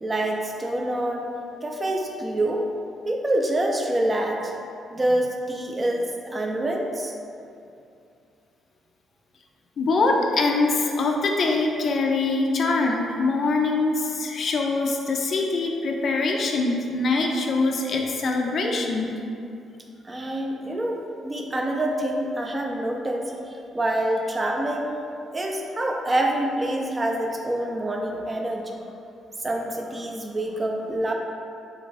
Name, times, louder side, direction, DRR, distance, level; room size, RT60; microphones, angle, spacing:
voice 1, 0.0-1.3 1.6-2.7 3.1-4.5 4.9-7.1 20.0-25.0 25.3-28.7 29.4-31.1, right 1 dB, 25° right, 1 dB, 0.4 m, -26 dB
voice 2, 9.8-19.1, left 3 dB, 55° left, 1 dB, 0.3 m, -23 dB
3.1 x 2.4 x 3.9 m, 2.6 s
cardioid pair, 90°, 0 cm